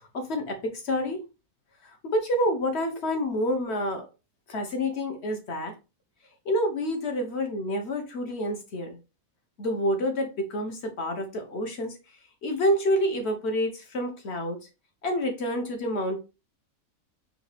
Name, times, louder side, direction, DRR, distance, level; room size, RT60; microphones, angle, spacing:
voice 1, 0.1-1.2 1.8-4.1 4.5-5.7 6.4-9.0 9.6-12.0 12.4-14.6 15.0-16.2, equal, 55° left, 4 dB, 1.2 m, -28 dB
4.8 x 2.8 x 3.4 m, 0.29 s
omnidirectional pair, 1.5 m